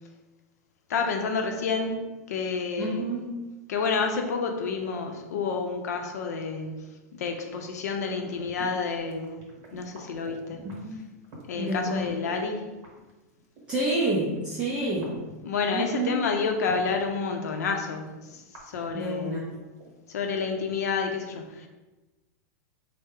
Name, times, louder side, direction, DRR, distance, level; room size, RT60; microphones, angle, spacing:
voice 1, 0.9-2.0 2.3-3.0 3.7-9.4 9.7-10.6 11.5-12.7 15.4-19.4 20.1-21.7, left 5 dB, 80° left, 4 dB, 0.6 m, -29 dB
voice 2, 2.8-3.4 10.6-11.0 11.5-12.1 13.7-15.2 15.7-16.3 18.9-19.6, right 2 dB, 10° right, -7 dB, 0.4 m, -29 dB
sound 1, 8.0-12.4 12.7-17.3 17.7-20.4 20.6-20.7, right 2 dB, 35° right, 0.9 m, -48 dB
4.2 x 2.1 x 3.6 m, 1.1 s
supercardioid pair, 180°, 9 cm